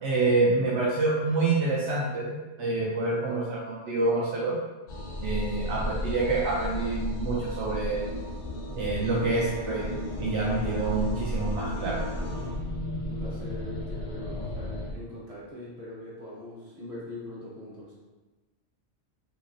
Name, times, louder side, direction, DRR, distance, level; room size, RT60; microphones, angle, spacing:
voice 1, 0.0-4.6 5.2-8.1 8.8-12.0, right 3 dB, 75° right, -5 dB, 0.9 m, -27 dB
sound 1, 4.9-14.9, left 1 dB, 60° left, 0.5 m, -33 dB
voice 2, 13.0-17.9, left 2 dB, 30° right, -7 dB, 0.9 m, -41 dB
2.9 x 2.9 x 2.5 m, 1.2 s
omnidirectional pair, 1.3 m